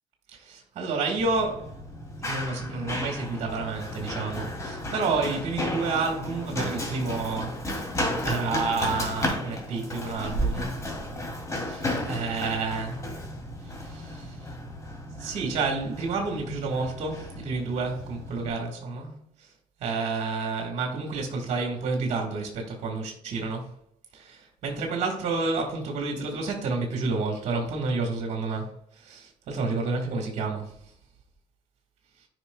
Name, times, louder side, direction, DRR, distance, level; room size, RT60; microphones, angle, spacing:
voice 1, 0.3-1.7 2.2-7.6 8.2-10.7 11.7-13.0 13.8-14.4 15.2-19.1 19.8-23.7 24.1-28.7 29.0-30.7, right 4 dB, 60° right, 1.5 m, -30 dB
Run, 1.2-18.5, left 1 dB, 25° left, 2.6 m, -33 dB
9.7 x 5.4 x 2.2 m
cardioid pair, 90°, 13 cm